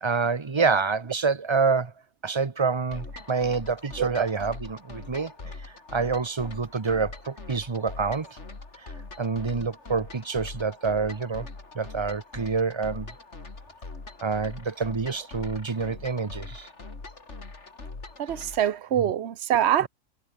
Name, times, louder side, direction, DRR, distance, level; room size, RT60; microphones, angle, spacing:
voice 1, 0.0-1.9 2.2-5.3 5.6-8.4 8.8-11.5 11.7-13.1 14.2-16.7, right 4 dB, 25° right, 0.8 m, -27 dB
sound 1, 2.9-18.8, left 3 dB, 55° left, 3.4 m, -42 dB
voice 2, 18.2-19.9, right 10 dB, 55° right, 1.2 m, -24 dB
omnidirectional pair, 1.4 m